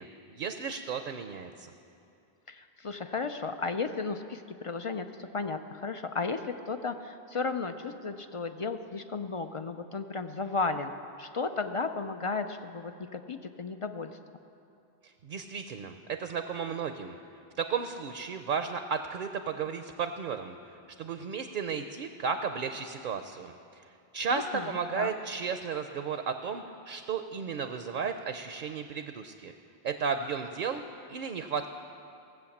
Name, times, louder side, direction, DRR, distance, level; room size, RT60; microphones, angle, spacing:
voice 1, 0.0-1.7 15.0-17.2 17.6-20.6 21.0-23.8 24.1-29.5 29.8-30.8 31.1-31.7, right 6 dB, 60° right, 8 dB, 0.7 m, -34 dB
voice 2, 2.5-10.9 11.2-14.1 24.3-25.1, left 4 dB, 50° left, 8 dB, 0.4 m, -34 dB
17.0 x 8.0 x 7.1 m, 2.7 s
omnidirectional pair, 1.0 m